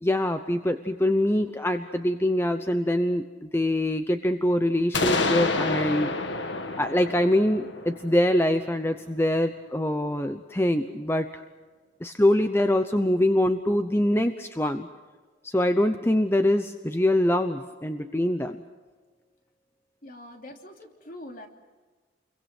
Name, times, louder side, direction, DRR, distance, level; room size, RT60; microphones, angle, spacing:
voice 1, 0.0-6.1 6.8-11.4 12.0-14.9 15.4-18.6, left 1 dB, 10° left, 8 dB, 0.8 m, -24 dB
sound 1, 4.9-8.7, left 3 dB, 65° left, 1.9 m, -28 dB
voice 2, 20.0-21.5, left 1 dB, 45° left, 3 dB, 3.1 m, -43 dB
28.5 x 23.5 x 6.2 m, 1.4 s
head